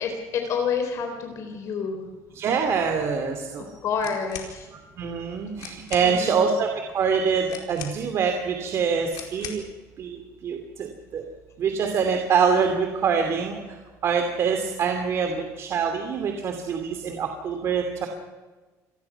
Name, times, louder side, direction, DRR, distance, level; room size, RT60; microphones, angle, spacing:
voice 1, 0.0-2.1 3.6-4.7 6.0-6.4 15.2-15.3, left 6 dB, 50° left, 4 dB, 3.9 m, -29 dB
voice 2, 2.3-3.7 4.7-9.6 10.0-11.2 11.6-13.8 14.0-18.1, right 6 dB, 45° right, 5 dB, 2.8 m, -25 dB
sound 1, 4.0-4.5 5.3-5.4 5.6-6.1 7.5-8.2 9.1-9.7, left 9 dB, 85° left, 4.6 m, -39 dB
28.5 x 20.0 x 5.9 m, 1.3 s
cardioid pair, 145°, 6 cm